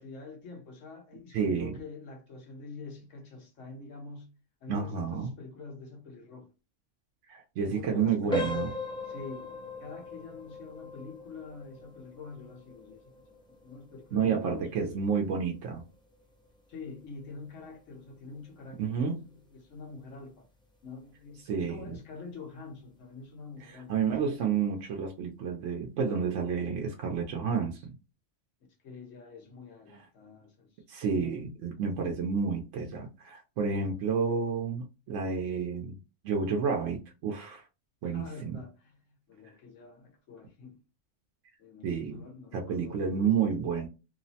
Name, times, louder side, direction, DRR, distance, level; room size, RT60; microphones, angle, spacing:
voice 1, 0.0-4.3 4.6-6.5 7.6-8.7 9.0-13.1 13.5-15.0 16.7-18.9 19.2-20.5 20.8-23.9 28.8-30.7 31.0-31.4 38.0-40.8 41.6-43.3, left 4 dB, 85° left, 1.2 m, -46 dB
voice 2, 1.3-1.8 4.7-5.3 7.3-8.7 14.1-15.8 18.8-19.2 21.4-22.0 23.7-28.0 30.9-36.0 36.2-37.6 38.0-38.6 41.8-42.2 42.5-43.9, right 6 dB, 85° right, 0.9 m, -30 dB
sound 1, 8.3-19.0 19.3-19.6 20.2-20.3 20.8-20.9, left 1 dB, 5° left, 0.5 m, -40 dB
3.0 x 2.0 x 2.7 m
omnidirectional pair, 1.2 m